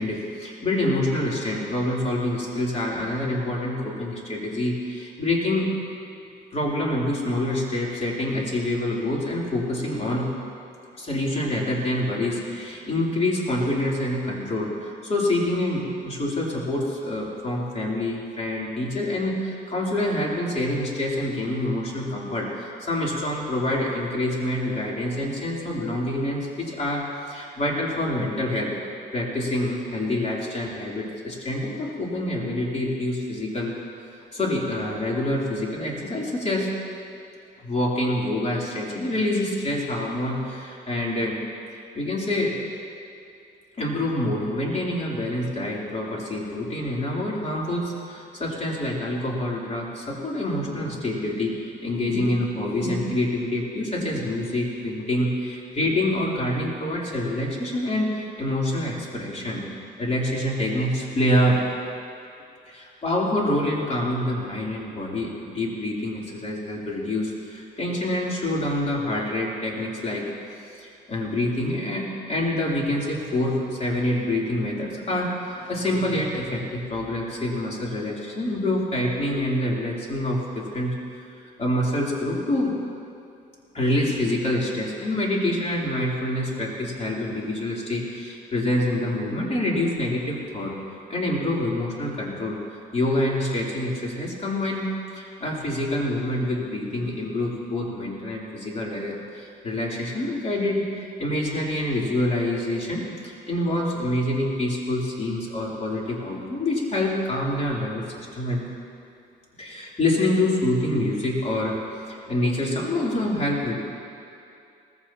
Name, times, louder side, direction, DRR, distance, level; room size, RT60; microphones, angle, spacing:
voice 1, 0.0-5.7 6.5-10.3 10.9-28.7 29.1-33.7 34.1-36.7 37.6-41.4 41.9-42.6 43.8-59.6 60.0-61.6 62.7-70.2 70.7-80.9 81.6-82.7 83.7-90.7 91.1-92.6 92.9-108.6 109.6-111.8 112.1-113.7, left 1 dB, 35° left, -4 dB, 3.5 m, -26 dB
19.0 x 15.5 x 3.0 m, 2.5 s
cardioid pair, 90°, 20 cm